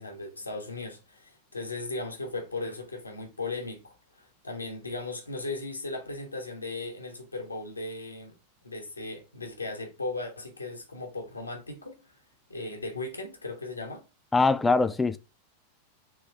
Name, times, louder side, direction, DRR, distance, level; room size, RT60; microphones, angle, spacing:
voice 1, 0.0-8.3 8.6-12.0 12.5-14.0, left 2 dB, 80° left, 1.0 m, -37 dB
voice 2, 14.3-15.2, left 3 dB, 10° left, 0.3 m, -22 dB
3.5 x 3.0 x 4.5 m
figure-of-eight pair, 90°, 0 cm